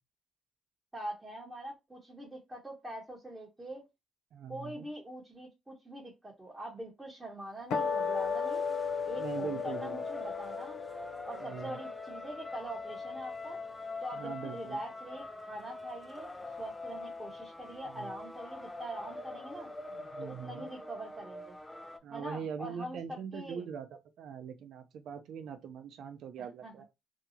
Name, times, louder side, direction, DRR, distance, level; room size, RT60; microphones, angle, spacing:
voice 1, 0.9-3.8 4.5-8.6 9.0-10.8 11.2-13.6 14.0-16.3 16.6-19.7 20.2-21.6 22.1-23.6 26.6-26.7, right 1 dB, 15° right, 1.0 m, -43 dB
voice 2, 4.3-4.9 9.2-10.0 11.4-11.8 14.1-14.8 17.8-18.1 19.9-20.7 22.0-26.9, right 7 dB, 75° right, 0.5 m, -42 dB
sound 1, 7.7-14.2, left 6 dB, 85° left, 0.5 m, -36 dB
sound 2, 7.7-22.0, left 2 dB, 15° left, 0.4 m, -44 dB
2.7 x 2.3 x 2.8 m
cardioid pair, 90°, 0 cm